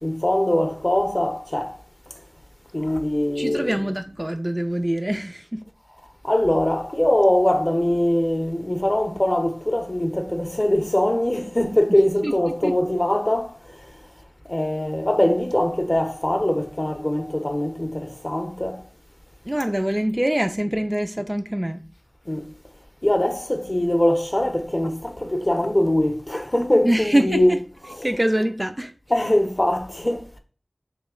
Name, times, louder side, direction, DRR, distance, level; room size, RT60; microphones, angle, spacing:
voice 1, 0.0-1.8 2.7-3.7 6.2-14.0 14.5-18.8 22.3-22.5 23.0-27.6 27.9-28.1 29.1-30.4, left 1 dB, 30° left, 0.6 m, -22 dB
voice 2, 3.4-5.6 12.2-12.3 12.6-12.7 19.5-21.8 26.8-27.6 28.0-28.9, right 1 dB, 25° right, 0.3 m, -24 dB
3.1 x 2.8 x 3.6 m
wide cardioid pair, 40°, 0 cm